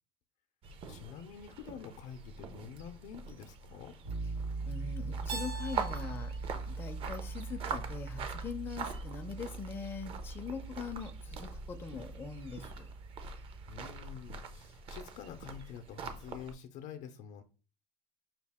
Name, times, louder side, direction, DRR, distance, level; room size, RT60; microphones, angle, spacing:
sound 1, 0.6-16.5, right 4 dB, 45° right, 0.6 m, -44 dB
voice 1, 0.9-3.9 13.7-17.4, left 8 dB, 70° left, 0.6 m, -47 dB
sound 2, 4.0-13.9, right 4 dB, 85° right, 2.6 m, -41 dB
voice 2, 4.6-12.9, left 6 dB, 15° left, 0.4 m, -42 dB
Keyboard (musical), 5.3-8.1, right 3 dB, 70° right, 1.4 m, -45 dB
5.7 x 2.4 x 3.4 m
cardioid pair, 165°, 13 cm